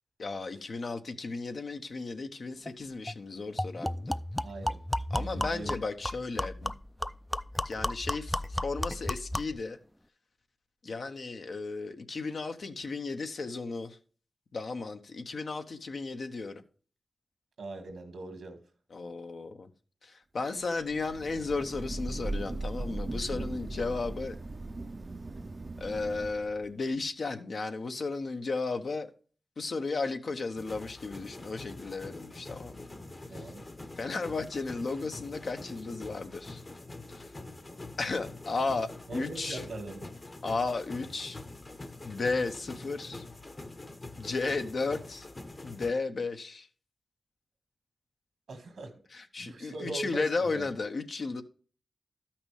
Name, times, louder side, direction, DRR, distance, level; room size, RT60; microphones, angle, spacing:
voice 1, 0.2-4.2 5.1-6.7 7.6-9.8 10.8-14.0 14.5-16.6 18.9-19.7 20.0-24.4 25.8-29.1 29.6-32.8 33.3-33.5 34.0-36.6 37.1-37.3 38.0-39.6 40.4-41.4 42.0-43.2 44.2-45.3 45.6-46.7 49.1-51.4, left 3 dB, 70° left, 1.0 m, -34 dB
sound 1, 2.7-2.8 3.1-3.2 3.6-9.6, left 1 dB, 10° left, 0.4 m, -34 dB
voice 2, 4.4-4.8 5.1-5.8 17.6-18.6 33.3-33.7 39.1-40.1 48.5-48.9 49.4-50.7, right 2 dB, 90° right, 1.8 m, -41 dB
Thunder / Rain, 20.9-26.7, right 2 dB, 45° right, 0.5 m, -38 dB
sound 2, 30.6-45.9, left 2 dB, 40° left, 1.0 m, -45 dB
12.5 x 5.9 x 3.3 m
cardioid pair, 55°, 0 cm